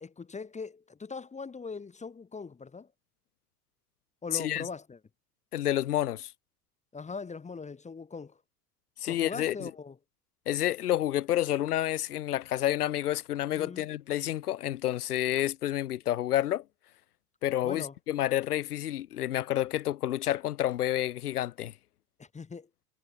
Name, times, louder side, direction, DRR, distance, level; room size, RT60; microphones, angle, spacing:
voice 1, 0.0-2.9 4.2-5.0 6.9-8.4 9.1-10.0 13.5-13.9 17.6-17.9 22.2-22.7, left 4 dB, 15° left, 1.2 m, -41 dB
voice 2, 4.3-4.6 5.5-6.3 9.0-9.5 10.5-16.6 17.4-21.7, left 13 dB, 75° left, 0.7 m, -29 dB
figure-of-eight pair, 70°, 45 cm